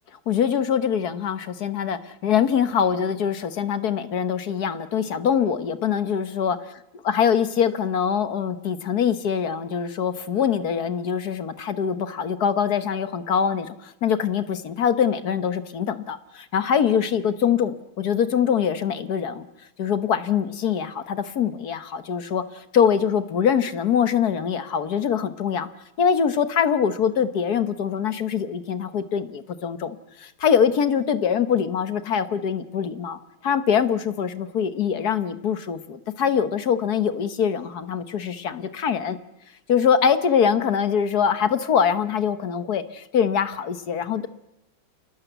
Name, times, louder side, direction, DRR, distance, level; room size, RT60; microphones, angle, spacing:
voice 1, 0.3-6.8 7.0-19.4 19.8-25.7 26.0-39.2 39.7-44.3, left 7 dB, 55° left, 11 dB, 1.5 m, -23 dB
28.5 x 19.0 x 8.1 m, 0.91 s
omnidirectional pair, 2.3 m